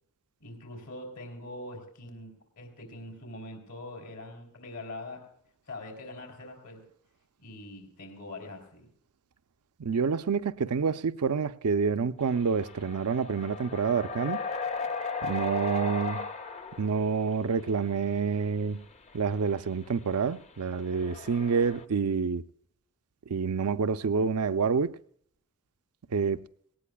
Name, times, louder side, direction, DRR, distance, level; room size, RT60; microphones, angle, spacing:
voice 1, 0.4-5.3 5.7-6.8 7.4-8.9, left 2 dB, 75° left, 3.6 m, -43 dB
voice 2, 9.8-14.4 15.2-16.3 16.8-18.8 19.1-22.4 23.3-25.0 26.1-26.4, right 5 dB, 80° right, 0.5 m, -28 dB
sound 1, 12.2-17.8 18.6-18.7 19.1-19.2 19.4-19.5 20.8-21.8, left 4 dB, 30° left, 0.6 m, -36 dB
18.5 x 18.5 x 2.3 m
head